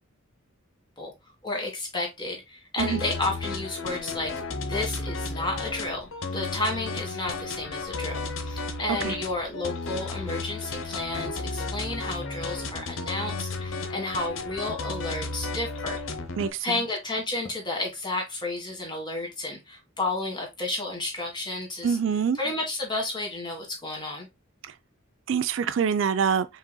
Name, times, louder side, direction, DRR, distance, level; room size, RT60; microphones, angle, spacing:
voice 1, 1.4-4.3 4.7-16.0 16.6-22.0 22.4-24.3, left 2 dB, 20° left, 1.6 m, -32 dB
sound 1, 2.8-16.5, left 3 dB, 70° left, 0.8 m, -33 dB
voice 2, 16.4-16.8 21.8-22.4 25.3-26.5, right 7 dB, 65° right, 0.4 m, -25 dB
5.4 x 4.0 x 2.2 m
head